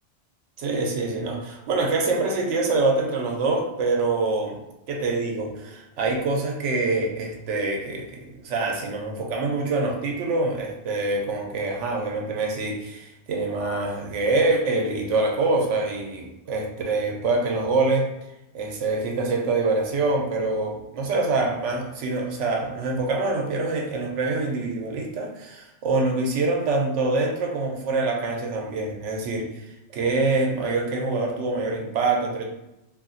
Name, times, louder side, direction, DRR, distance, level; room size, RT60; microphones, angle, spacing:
voice 1, 0.6-4.6 4.9-18.1 18.5-32.4, right 3 dB, 90° right, 1 dB, 0.9 m, -25 dB
2.7 x 2.5 x 2.6 m, 0.91 s
omnidirectional pair, 1.2 m